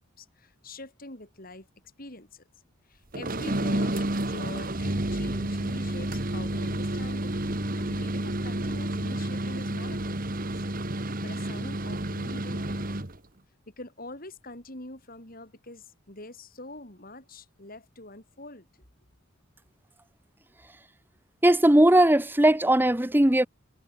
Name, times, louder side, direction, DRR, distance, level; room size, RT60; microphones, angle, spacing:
voice 1, 0.0-1.7 2.0-2.5 2.9-13.1 13.7-18.7, left 2 dB, 45° left, 5.8 m, -45 dB
sound 1, 3.1-13.2, right 1 dB, 45° right, 2.1 m, -30 dB
voice 2, 21.4-23.5, right 1 dB, 10° right, 0.9 m, -19 dB
head